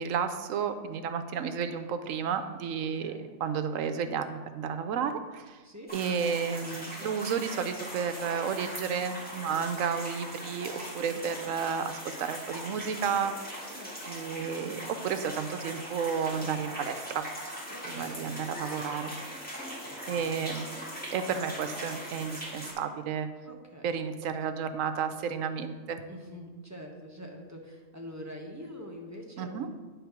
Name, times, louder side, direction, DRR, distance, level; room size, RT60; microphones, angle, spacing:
voice 1, 0.0-3.1 3.4-5.6 5.9-13.3 14.1-17.3 17.8-19.1 20.1-20.7 21.1-23.3 23.8-26.0 29.4-29.7, right 7 dB, 80° right, 9 dB, 1.0 m, -32 dB
voice 2, 2.8-3.3 5.6-5.9 9.0-9.2 11.1-11.5 13.7-14.2 16.4-16.7 17.7-18.6 19.7-20.3 23.4-23.9 26.1-29.7, equal, 15° right, 0 dB, 0.8 m, -46 dB
fuente.patio, 5.9-22.7, equal, 5° left, 1.6 m, -40 dB
9.4 x 3.8 x 5.8 m, 1.4 s
omnidirectional pair, 1.4 m